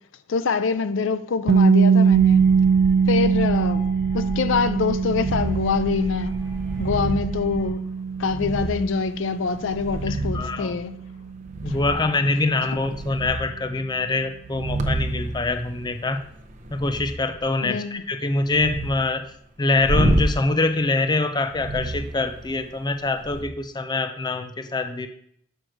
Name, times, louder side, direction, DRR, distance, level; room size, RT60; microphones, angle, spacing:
voice 1, 0.3-2.5 3.1-3.9 4.1-6.3 6.8-7.9 8.2-10.9 11.7-11.8 17.6-18.0, left 5 dB, 75° left, 0.5 m, -25 dB
sound 1, 1.5-13.3, right 5 dB, 60° right, 0.3 m, -22 dB
sound 2, 2.1-7.7, right 1 dB, 40° left, 2.4 m, -35 dB
sound 3, 5.2-5.7 6.5-7.3 8.2-8.9 9.5-10.5 11.5-12.1 12.5-13.4 14.4-17.1 18.4-19.0 19.8-20.3 21.5-22.7 23.2-23.4, right 1 dB, 40° right, 0.7 m, -28 dB
voice 2, 10.1-10.8 11.6-16.2 16.7-19.3 19.6-25.1, left 3 dB, 20° left, 0.5 m, -24 dB
6.3 x 4.6 x 6.4 m
head